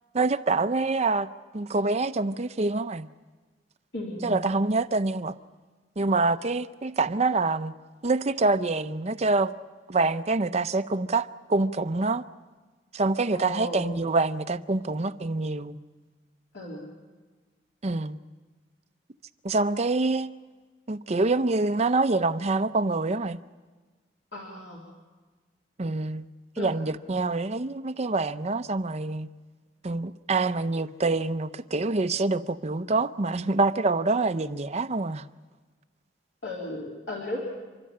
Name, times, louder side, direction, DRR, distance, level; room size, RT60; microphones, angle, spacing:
voice 1, 0.1-1.3 1.5-3.1 4.2-5.3 6.0-7.7 8.0-9.5 9.9-12.2 12.9-15.8 17.8-18.2 19.4-20.3 20.9-23.4 25.8-26.2 26.6-29.3 29.8-35.2, right 3 dB, 35° right, 0.6 m, -26 dB
voice 2, 3.9-4.4 13.3-13.9 16.5-16.8 24.3-24.8 26.6-26.7 36.4-37.4, left 1 dB, 85° left, 3.6 m, -35 dB
30.0 x 12.5 x 8.7 m
head